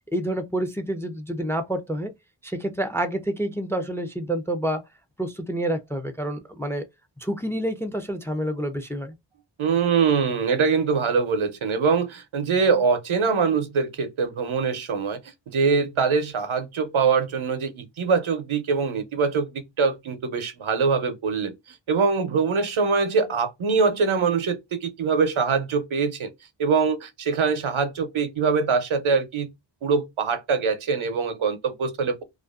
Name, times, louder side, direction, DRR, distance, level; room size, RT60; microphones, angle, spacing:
voice 1, 0.1-2.1 2.4-4.8 5.2-6.9 7.2-9.1, right 1 dB, 5° left, 0.4 m, -28 dB
voice 2, 9.6-15.2 15.5-21.5 21.9-26.3 26.6-29.5 29.8-32.2, right 5 dB, 80° right, 0.6 m, -23 dB
2.5 x 2.3 x 2.3 m
wide cardioid pair, 40°, 47 cm